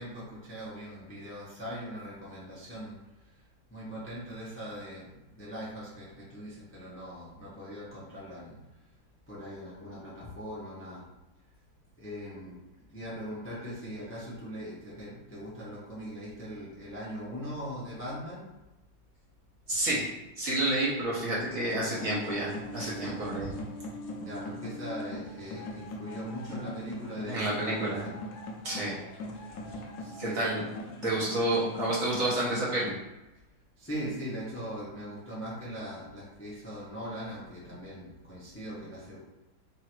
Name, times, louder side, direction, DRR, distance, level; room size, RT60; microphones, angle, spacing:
voice 1, 0.0-3.0 3.7-8.6 9.3-11.0 12.0-12.5 12.9-18.5 24.2-28.2 30.0-30.5 33.8-39.2, equal, 10° left, -7 dB, 0.7 m, -40 dB
voice 2, 19.7-20.0 20.4-23.5 27.3-28.0 28.6-29.0 30.2-30.7 31.0-32.9, right 1 dB, 50° right, -6 dB, 1.2 m, -29 dB
sound 1, 21.6-32.9, left 1 dB, 65° left, 1.1 m, -41 dB
3.8 x 2.7 x 4.5 m, 1.0 s
omnidirectional pair, 2.1 m